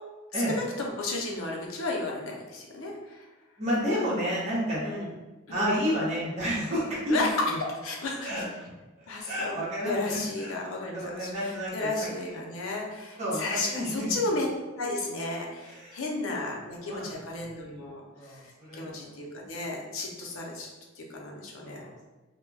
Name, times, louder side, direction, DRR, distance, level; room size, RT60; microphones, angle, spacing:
voice 1, 0.3-3.2 4.8-5.1 5.5-5.7 7.1-7.3 7.8-8.4 9.1-14.5 14.8-18.0 18.3-18.4 18.7-20.7 21.0-21.9, left 2 dB, 70° left, -1 dB, 0.6 m, -33 dB
voice 2, 3.6-5.1 5.5-7.2 7.5-7.6 8.2-8.5 9.0-10.6 10.9-12.3 13.2-14.1 15.6-16.0 16.3-16.5 16.8-17.1 18.1-19.1 21.6-22.0, equal, 35° right, -7 dB, 0.9 m, -31 dB
2.2 x 2.1 x 3.2 m, 1.2 s
head